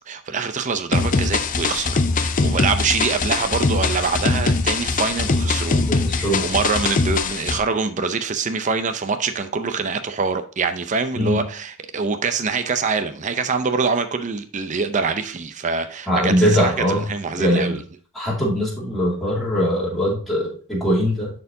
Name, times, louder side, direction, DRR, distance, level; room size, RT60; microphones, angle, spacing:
voice 1, 0.1-5.8 6.1-17.8, right 5 dB, 35° right, 0.6 m, -24 dB
sound 1, 0.9-7.6, left 3 dB, 40° left, 0.5 m, -21 dB
voice 2, 6.1-6.4 11.1-11.4 16.1-17.0 17.4-17.8 18.1-21.3, equal, ahead, 2.5 m, -21 dB
10.5 x 4.5 x 2.7 m
head